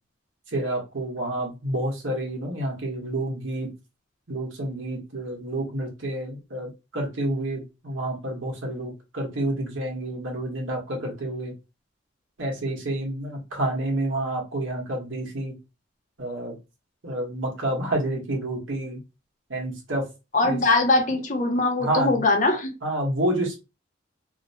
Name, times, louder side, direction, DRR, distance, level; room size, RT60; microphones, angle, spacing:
voice 1, 0.5-3.7 4.3-11.5 12.4-15.5 16.2-16.6 17.0-19.0 19.5-20.0 20.4-20.6 21.8-22.2 22.8-23.6, right 1 dB, 80° right, 1.1 m, -29 dB
voice 2, 20.3-22.7, left 2 dB, 40° left, 0.5 m, -22 dB
2.8 x 2.0 x 2.7 m
head